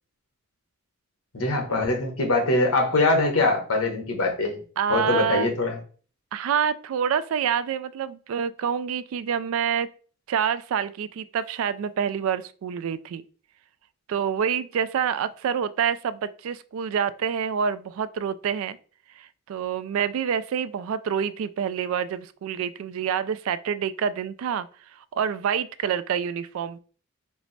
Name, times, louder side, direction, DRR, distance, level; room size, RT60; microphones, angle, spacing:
voice 1, 1.3-4.6 4.9-5.8, left 2 dB, 85° left, 1.1 m, -23 dB
voice 2, 4.8-5.5 6.3-9.9 10.3-13.2 14.1-18.8 19.2-24.7 25.0-26.8, right 7 dB, 75° right, 0.3 m, -27 dB
4.5 x 2.0 x 4.0 m
head